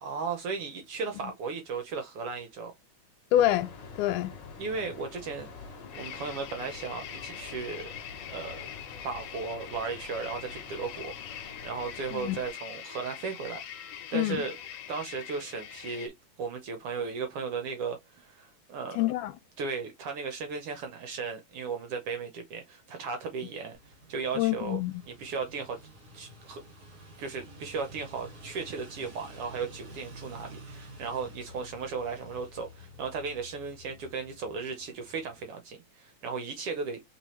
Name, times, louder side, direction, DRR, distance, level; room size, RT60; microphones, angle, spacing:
voice 1, 0.0-2.7 4.6-7.9 8.3-13.6 14.1-14.5 14.9-16.1 16.4-19.0 19.6-23.8 24.1-24.8 25.1-25.8 26.1-26.6 27.2-37.0, right 5 dB, 70° right, 1.4 m, -36 dB
voice 2, 3.3-4.3 12.1-12.4 14.1-14.4 18.9-19.3 24.4-25.0, left 13 dB, 90° left, 2.1 m, -27 dB
sound 1, 3.3-12.5, left 4 dB, 50° left, 1.5 m, -46 dB
sound 2, 5.9-16.1, left 10 dB, 65° left, 1.8 m, -43 dB
sound 3, 23.7-35.5, equal, 45° right, 1.4 m, -50 dB
4.6 x 3.5 x 3.1 m
omnidirectional pair, 3.6 m